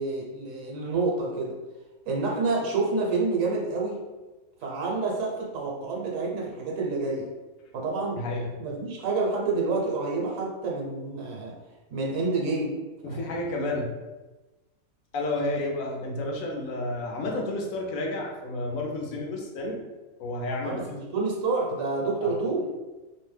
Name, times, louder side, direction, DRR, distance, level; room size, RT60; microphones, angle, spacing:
voice 1, 0.0-1.5 2.1-4.0 4.6-7.3 7.7-8.2 8.6-11.5 11.9-12.8 13.1-13.2 20.6-22.7, right 3 dB, 70° right, -2 dB, 1.0 m, -28 dB
voice 2, 8.2-8.5 13.0-14.0 15.1-19.8 20.2-20.8 22.2-22.3, left 2 dB, 75° left, 0 dB, 0.9 m, -31 dB
2.7 x 2.1 x 3.1 m, 1.2 s
omnidirectional pair, 1.5 m